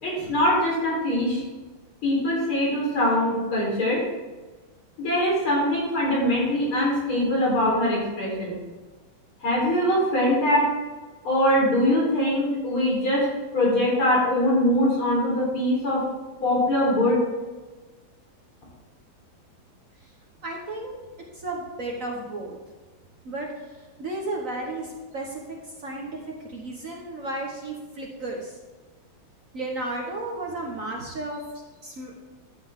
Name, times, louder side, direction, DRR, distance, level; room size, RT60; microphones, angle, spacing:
voice 1, 0.0-1.4 2.0-4.0 5.0-8.5 9.4-10.7 11.2-13.3 13.5-16.0 16.4-17.2, left 1 dB, 75° left, -5 dB, 4.8 m, -22 dB
voice 2, 20.4-20.9 21.3-22.6 23.2-23.5 24.0-25.4 25.8-28.6 29.5-31.4 31.8-32.1, right 2 dB, 45° right, 0 dB, 1.3 m, -33 dB
12.0 x 7.9 x 3.6 m, 1.3 s
omnidirectional pair, 2.3 m